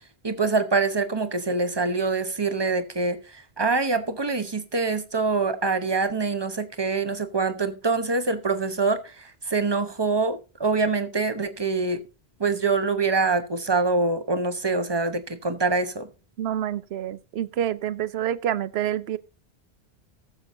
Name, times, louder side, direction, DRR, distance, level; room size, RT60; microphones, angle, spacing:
voice 1, 0.2-12.0 12.4-16.1, right 4 dB, 25° right, 1.0 m, -25 dB
voice 2, 16.4-19.2, right 10 dB, 80° right, 0.9 m, -27 dB
19.5 x 7.2 x 2.7 m
omnidirectional pair, 1.1 m